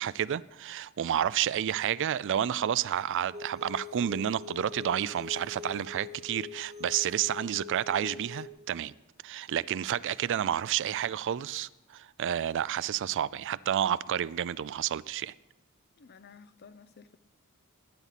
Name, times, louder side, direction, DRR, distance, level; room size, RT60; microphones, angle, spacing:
voice 1, 0.0-8.9 9.2-15.3, right 10 dB, 60° right, 0.4 m, -30 dB
sound 1, 3.3-8.5, left 5 dB, 30° right, 0.8 m, -44 dB
voice 2, 16.0-17.2, left 5 dB, 50° left, 0.6 m, -53 dB
19.0 x 9.5 x 4.2 m
head